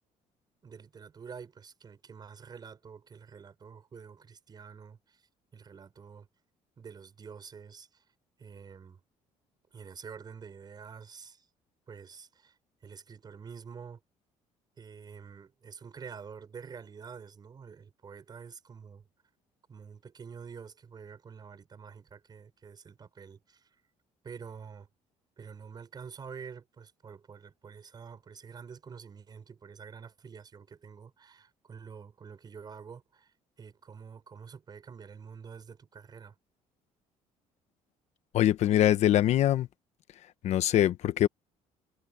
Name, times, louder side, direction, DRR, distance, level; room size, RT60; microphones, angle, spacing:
voice 1, 0.6-5.2 5.5-6.3 6.8-8.0 8.4-9.0 9.7-11.5 11.9-12.6 12.8-14.0 14.8-19.0 19.7-23.7 24.2-24.9 25.4-33.3 33.6-36.3, right 6 dB, 35° right, 5.9 m, -47 dB
voice 2, 38.3-39.7 40.4-41.3, left 12 dB, 65° left, 1.0 m, -23 dB
cardioid pair, 130°, 13 cm